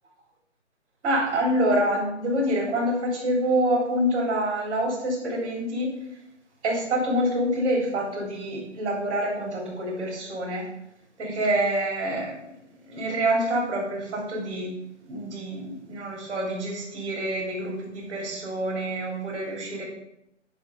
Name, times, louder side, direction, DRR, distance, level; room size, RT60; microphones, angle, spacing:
voice 1, 1.0-5.9 6.6-10.7 11.2-12.4 12.8-14.7 15.1-19.8, right 1 dB, 25° right, -2 dB, 3.5 m, -26 dB
10.0 x 5.0 x 4.8 m, 0.81 s
hypercardioid pair, 165°, 36 cm